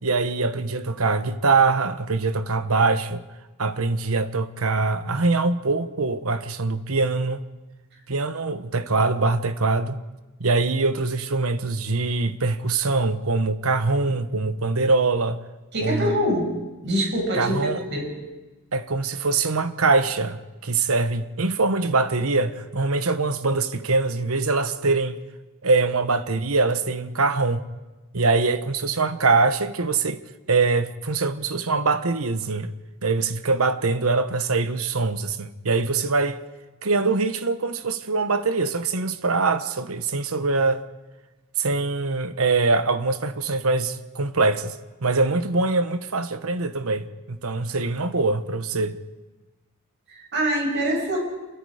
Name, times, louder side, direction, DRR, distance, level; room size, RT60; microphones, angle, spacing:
voice 1, 0.0-3.2 3.6-7.4 8.1-10.0 10.4-15.4 15.8-16.2 17.3-17.8 18.7-25.2 25.6-27.6 28.1-30.2 30.5-32.7 33.0-36.4 36.8-40.8 41.6-49.0, right 3 dB, 70° right, 1.2 m, -23 dB
voice 2, 15.7-16.5 16.8-18.1 50.1-51.2, equal, 55° right, 6.7 m, -24 dB
28.0 x 23.0 x 5.0 m
head